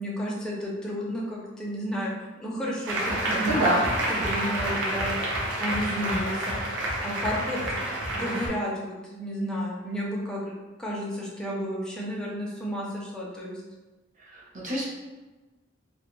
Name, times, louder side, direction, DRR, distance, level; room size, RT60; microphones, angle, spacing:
voice 1, 0.0-2.1 2.4-3.8 4.2-5.2 5.6-6.6 7.0-7.8 8.1-10.5 10.8-13.6, equal, 5° left, -4 dB, 0.4 m, -31 dB
Applause, 2.9-8.5, right 1 dB, 80° right, 0.6 m, -29 dB
voice 2, 3.4-3.9 14.2-14.9, right 1 dB, 40° right, -4 dB, 0.7 m, -26 dB
2.4 x 2.2 x 3.0 m, 1.2 s
head